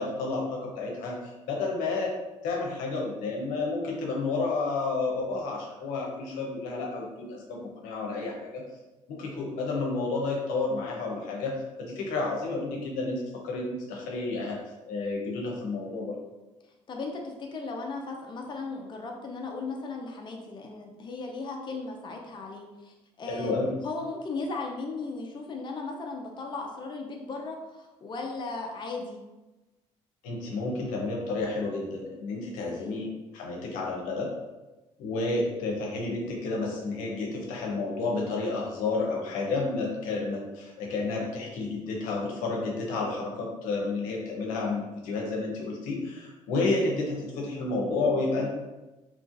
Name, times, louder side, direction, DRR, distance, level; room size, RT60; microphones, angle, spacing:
voice 1, 0.0-2.1 2.4-8.6 9.1-14.6 14.9-16.2 23.3-23.7 30.2-34.3 35.0-48.5, left 3 dB, 85° left, -1 dB, 0.7 m, -31 dB
voice 2, 16.9-23.6 23.8-29.2 32.5-33.0, left 3 dB, 35° left, 1 dB, 0.5 m, -36 dB
3.0 x 2.4 x 2.5 m, 1.1 s
supercardioid pair, 75°, 13 cm